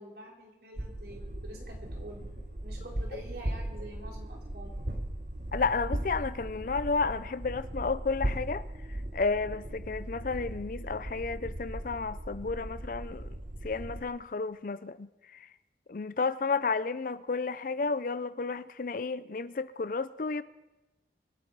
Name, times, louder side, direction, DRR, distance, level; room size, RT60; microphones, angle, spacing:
voice 1, 0.0-2.2 2.6-4.7, right 1 dB, 60° right, 3.3 m, -47 dB
sound 1, 0.8-14.0, right 1 dB, 45° right, 1.2 m, -38 dB
voice 2, 5.5-8.6 9.1-13.4 13.6-15.5 15.9-20.4, left 4 dB, 50° left, 0.4 m, -32 dB
25.0 x 8.6 x 4.7 m
head